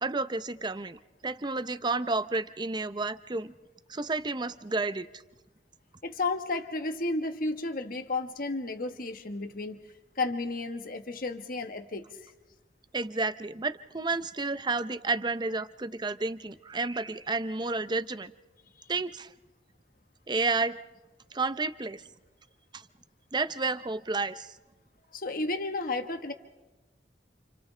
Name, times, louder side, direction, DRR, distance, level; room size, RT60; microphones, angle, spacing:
voice 1, 0.0-3.5 3.9-5.1 12.9-18.3 18.9-19.3 20.3-20.8 21.3-22.0 22.7-22.8 23.3-24.5, right 3 dB, 25° right, 13 dB, 0.6 m, -31 dB
voice 2, 6.0-9.8 10.2-12.0 25.1-26.3, left 3 dB, 50° left, 6 dB, 1.4 m, -32 dB
29.5 x 28.5 x 3.4 m, 1.1 s
head